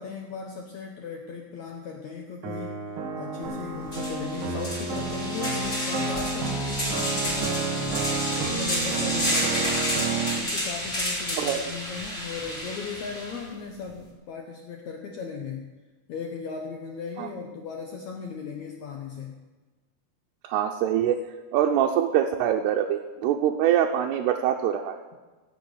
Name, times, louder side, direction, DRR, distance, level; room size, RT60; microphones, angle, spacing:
voice 1, 0.0-2.8 3.2-8.0 8.4-9.9 10.4-15.7 16.1-19.4, left 5 dB, 70° left, 1 dB, 1.7 m, -37 dB
sound 1, 2.4-10.4, right 4 dB, 70° right, 1.3 m, -30 dB
sound 2, 3.4-3.5 3.9-13.4, equal, 15° left, 2.6 m, -30 dB
voice 2, 11.4-11.7 17.2-17.3 20.4-21.2 21.5-25.0, right 10 dB, 85° right, 2 dB, 2.8 m, -24 dB
16.0 x 7.1 x 7.9 m, 1.2 s
omnidirectional pair, 4.6 m